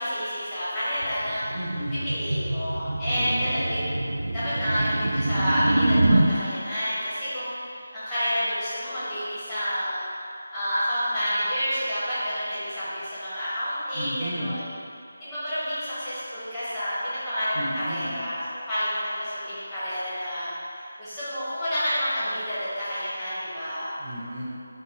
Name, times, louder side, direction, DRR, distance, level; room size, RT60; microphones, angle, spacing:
voice 1, 0.0-1.4 1.9-3.8 4.3-7.5 7.9-10.1 10.5-14.6 15.2-23.9, equal, 5° left, -14 dB, 0.9 m, -29 dB
sound 1, 1.0-6.3, right 2 dB, 75° right, 0.3 m, -25 dB
voice 2, 1.5-2.0 3.1-3.8 13.9-14.6 17.5-18.2 24.0-24.4, equal, 35° right, -7 dB, 0.7 m, -33 dB
4.8 x 2.2 x 4.2 m, 2.5 s
figure-of-eight pair, 175°, 0 cm